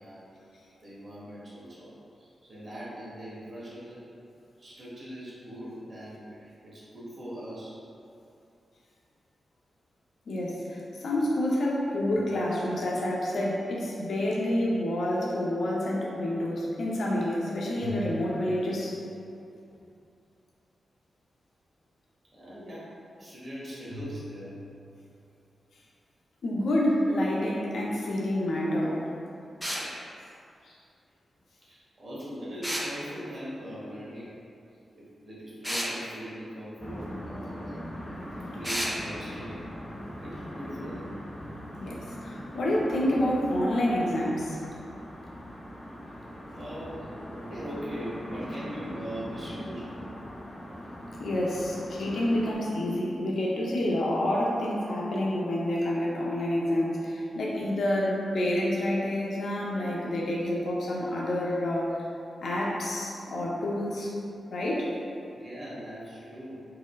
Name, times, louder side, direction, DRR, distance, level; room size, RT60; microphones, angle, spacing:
voice 1, 0.0-1.9 2.2-4.0 4.6-7.8 22.3-22.9 23.2-24.6 31.7-34.3 34.9-37.8 38.4-39.7 40.2-41.1 46.5-47.1 47.4-49.9 65.3-66.6, equal, 50° right, -9 dB, 1.1 m, -41 dB
voice 2, 10.3-19.0 26.4-29.0 30.6-30.8 41.8-44.6 51.2-62.0 62.4-64.1 64.5-64.9, left 1 dB, 75° left, -4 dB, 0.6 m, -28 dB
sound 1, 12.1-13.3 17.8-19.4 23.9-25.0, equal, 65° right, 0.7 m, -44 dB
sound 2, 29.6-29.9 32.6-32.9 35.6-35.9 38.6-39.0, equal, ahead, 0.4 m, -30 dB
sound 3, 36.8-52.6, equal, 35° left, 0.7 m, -40 dB
4.7 x 2.0 x 2.3 m, 2.6 s
wide cardioid pair, 95°, 0 cm